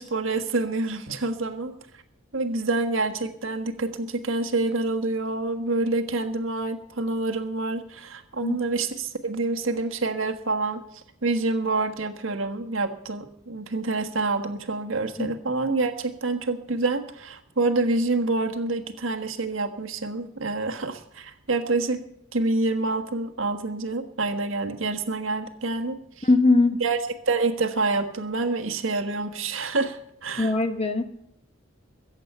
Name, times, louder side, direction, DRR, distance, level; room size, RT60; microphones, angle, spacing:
voice 1, 0.0-1.7 2.3-22.0 22.3-26.3 26.8-27.0 27.3-30.5, right 3 dB, 75° right, 5 dB, 1.5 m, -27 dB
voice 2, 26.2-26.8 30.4-31.0, left 2 dB, 30° left, 8 dB, 1.0 m, -20 dB
22.5 x 8.2 x 5.6 m, 0.76 s
head